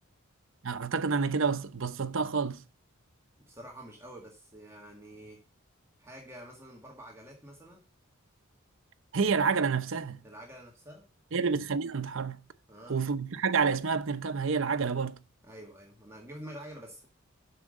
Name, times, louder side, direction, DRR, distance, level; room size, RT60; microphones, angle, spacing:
voice 1, 0.6-2.6 9.1-10.2 11.3-12.4 12.9-15.2, right 5 dB, 65° right, 0.7 m, -29 dB
voice 2, 3.5-5.4 6.0-7.8 10.2-11.1 12.7-13.0 15.4-17.1, right 1 dB, 15° right, 1.9 m, -47 dB
7.8 x 6.1 x 6.5 m
head